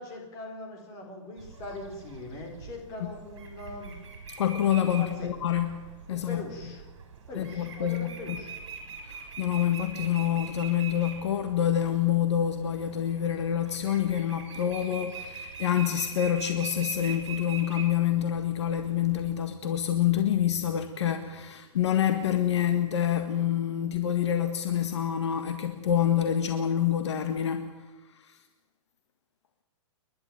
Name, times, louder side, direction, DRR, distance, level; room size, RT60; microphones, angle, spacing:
voice 1, 0.0-3.9 4.9-5.3 6.1-6.8 7.3-8.6, left 2 dB, 20° left, 2 dB, 4.4 m, -41 dB
sound 1, 1.4-19.3, right 5 dB, 60° right, 7.0 m, -43 dB
voice 2, 4.4-5.8 6.1-6.4 7.4-8.1 9.0-27.7 28.2-28.4, left 10 dB, 60° left, 7 dB, 1.8 m, -27 dB
29.5 x 11.5 x 9.3 m, 1.2 s
hypercardioid pair, 175°, 17 cm